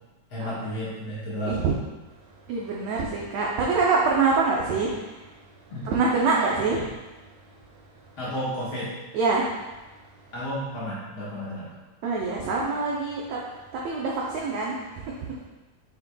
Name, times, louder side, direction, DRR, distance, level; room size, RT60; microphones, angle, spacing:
voice 1, 0.3-1.7 5.7-5.9 8.2-8.9 10.3-11.7, equal, 55° left, -9 dB, 1.6 m, -32 dB
voice 2, 2.5-4.9 5.8-6.8 9.1-9.4 12.0-13.4 13.8-14.7, right 4 dB, 90° right, -3 dB, 1.5 m, -24 dB
6.7 x 6.5 x 2.2 m, 1.2 s
omnidirectional pair, 3.9 m